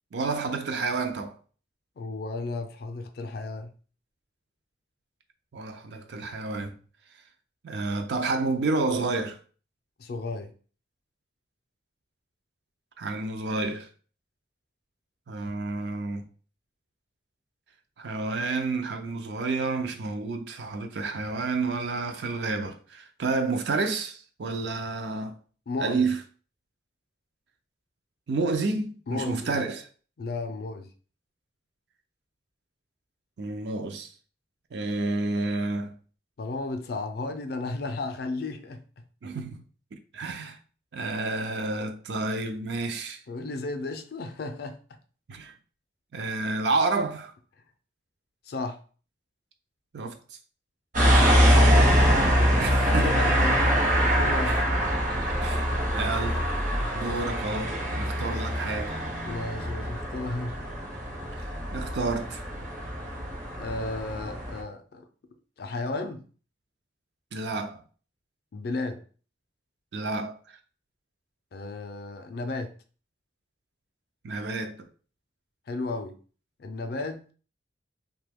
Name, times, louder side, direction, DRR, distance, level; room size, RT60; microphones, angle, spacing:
voice 1, 0.1-1.4 5.5-6.7 7.6-9.4 13.0-13.9 15.3-16.2 18.0-25.4 25.8-26.2 28.3-29.9 33.4-34.1 34.7-35.9 39.2-39.6 39.9-40.6 40.9-43.2 45.3-45.5 46.1-47.3 49.9-50.2 52.6-53.1 54.4-54.6 55.4-56.5 56.9-59.0 61.4-62.4 67.3-67.8 69.9-70.4 74.2-74.8, right 3 dB, 65° right, 0.4 m, -30 dB
voice 2, 2.0-3.7 10.0-10.5 25.7-26.1 29.1-29.6 30.2-30.9 36.4-39.0 43.3-44.8 48.5-48.8 51.5-52.1 52.9-54.6 59.3-60.7 61.1-61.2 63.6-65.1 65.6-66.2 68.5-69.0 71.5-72.7 75.7-76.1 76.6-77.3, left 3 dB, 55° left, 0.4 m, -34 dB
sound 1, 50.9-64.6, equal, 45° right, 0.8 m, -24 dB
2.8 x 2.2 x 3.4 m
head